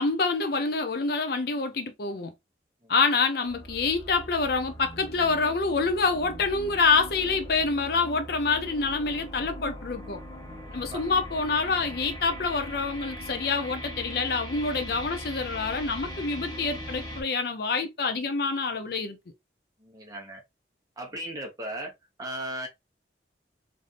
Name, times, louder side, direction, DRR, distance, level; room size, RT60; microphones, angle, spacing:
voice 1, 0.0-2.3 2.9-10.2 10.7-19.2, left 4 dB, 55° left, 0.5 m, -26 dB
sound 1, 3.4-17.2, equal, 20° left, 1.0 m, -40 dB
voice 2, 19.8-20.4 21.0-21.9 22.2-22.7, right 1 dB, 20° right, 1.0 m, -36 dB
3.3 x 2.6 x 2.4 m
head